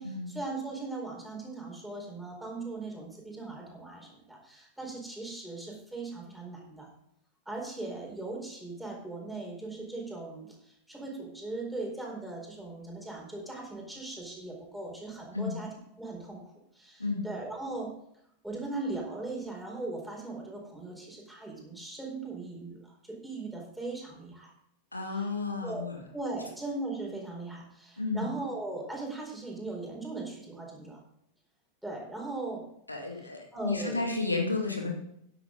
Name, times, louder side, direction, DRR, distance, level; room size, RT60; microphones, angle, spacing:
voice 1, 0.0-6.9 7.5-17.9 18.4-24.5 25.1-25.3 25.6-31.0 31.8-32.7 33.5-34.1, right 2 dB, 5° right, -1 dB, 4.5 m, -39 dB
voice 2, 24.9-26.0 28.0-28.3 32.9-34.9, left 3 dB, 85° left, 1 dB, 2.2 m, -32 dB
13.0 x 10.5 x 3.9 m, 0.75 s
figure-of-eight pair, 90°, 0 cm